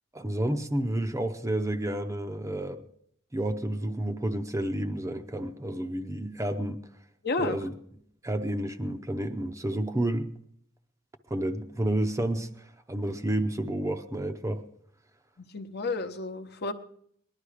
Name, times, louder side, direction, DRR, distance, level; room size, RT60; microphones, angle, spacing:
voice 1, 0.1-2.8 3.3-6.8 7.4-7.7 8.2-10.3 11.3-14.6, right 1 dB, 15° right, 6 dB, 0.6 m, -30 dB
voice 2, 7.2-7.6 15.5-16.7, left 3 dB, 55° left, 9 dB, 1.0 m, -31 dB
19.5 x 11.5 x 4.9 m, 0.69 s
head